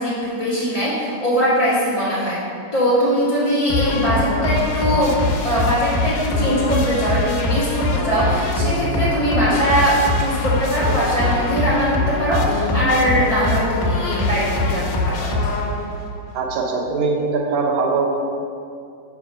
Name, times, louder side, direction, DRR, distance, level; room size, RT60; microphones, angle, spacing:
voice 1, 0.0-2.4 2.7-15.4, equal, 45° left, -13 dB, 0.4 m, -21 dB
sound 1, 3.7-16.1, left 3 dB, 75° left, 2.2 m, -22 dB
voice 2, 16.3-18.1, right 4 dB, 75° right, 0 dB, 2.5 m, -21 dB
5.7 x 5.6 x 6.1 m, 2.4 s
omnidirectional pair, 4.2 m